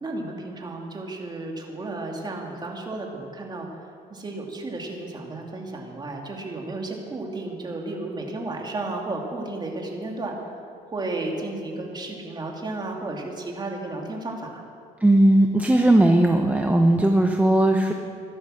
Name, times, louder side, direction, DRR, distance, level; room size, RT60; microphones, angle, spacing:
voice 1, 0.0-3.8 4.1-10.3 10.9-14.6, right 2 dB, 25° right, 0 dB, 2.7 m, -33 dB
voice 2, 15.0-17.9, right 1 dB, 10° right, 3 dB, 0.9 m, -18 dB
16.0 x 12.5 x 6.5 m, 2.5 s
cardioid pair, 110°, 17 cm